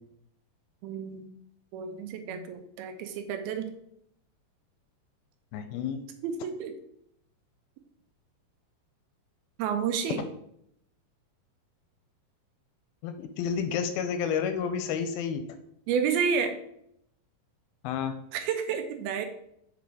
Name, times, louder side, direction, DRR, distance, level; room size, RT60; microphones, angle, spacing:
voice 1, 0.8-1.3 1.7-3.7 6.2-6.8 9.6-10.2 15.9-16.6 18.3-19.3, right 6 dB, 85° right, 7 dB, 2.5 m, -30 dB
voice 2, 5.5-6.1 13.0-15.4 17.8-18.1, left 7 dB, 80° left, 8 dB, 2.3 m, -30 dB
7.3 x 4.0 x 4.7 m, 0.74 s
omnidirectional pair, 4.5 m